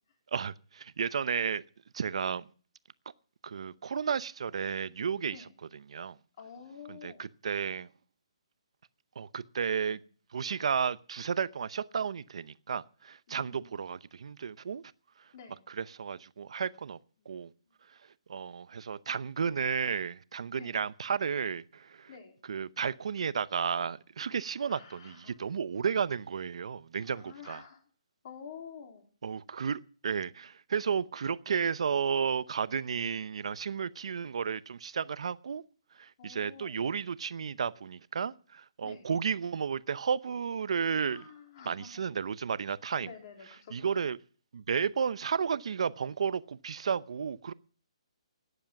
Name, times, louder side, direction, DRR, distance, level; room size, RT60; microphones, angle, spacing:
voice 1, 0.3-1.6 1.9-2.5 3.4-6.2 6.9-7.9 9.2-10.0 10.3-14.8 15.7-17.0 17.3-17.5 18.3-22.1 22.5-27.6 29.2-35.6 36.0-41.3 41.6-43.1 43.7-44.2 44.5-47.5, right 6 dB, 65° right, 0.7 m, -33 dB
voice 2, 6.4-7.2 13.3-13.7 15.3-15.6 20.6-20.8 22.1-22.3 24.7-25.5 27.0-27.8 28.2-29.0 36.2-36.8 38.8-39.1 41.1-42.0 43.0-44.0, left 6 dB, 40° left, 3.8 m, -49 dB
14.5 x 10.0 x 5.9 m
hypercardioid pair, 165°, 3 cm